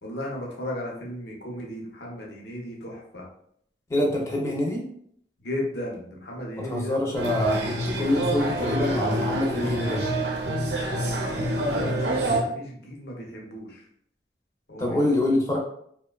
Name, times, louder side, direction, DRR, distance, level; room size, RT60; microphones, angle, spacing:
voice 1, 0.0-3.3 5.4-7.0 10.9-13.8 14.7-15.0, left 1 dB, 70° left, -2 dB, 0.7 m, -35 dB
voice 2, 3.9-4.8 6.6-10.0 14.8-15.6, left 1 dB, 15° left, -2 dB, 0.5 m, -25 dB
sound 1, 7.2-12.4, right 1 dB, 75° right, 0.6 m, -27 dB
2.8 x 2.2 x 2.2 m, 0.67 s
head